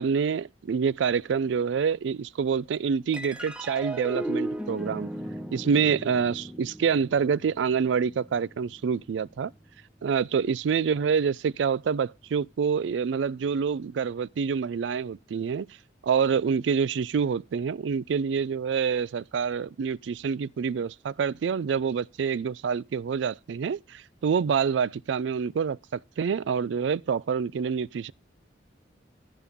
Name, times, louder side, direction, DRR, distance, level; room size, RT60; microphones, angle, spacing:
voice 1, 0.0-5.1 5.5-9.5 10.0-15.7 16.0-28.1, right 6 dB, 75° right, 0.4 m, -27 dB
sound 1, 3.1-9.8, right 1 dB, 5° right, 1.0 m, -37 dB
14.5 x 5.4 x 3.5 m
head